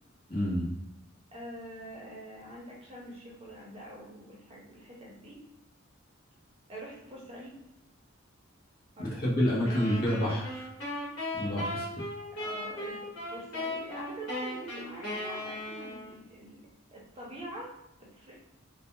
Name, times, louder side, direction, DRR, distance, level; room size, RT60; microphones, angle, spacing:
voice 1, 0.3-0.7 9.0-10.7 11.3-11.8, equal, 45° left, -6 dB, 0.8 m, -28 dB
voice 2, 1.3-5.4 6.7-7.6 9.0-9.2 9.9-10.1 12.3-16.6 16.9-17.7 18.0-18.4, right 1 dB, 30° right, -4 dB, 0.7 m, -45 dB
sound 1, 9.7-16.2, left 1 dB, 90° left, 1.0 m, -37 dB
2.3 x 2.2 x 2.7 m, 0.87 s
head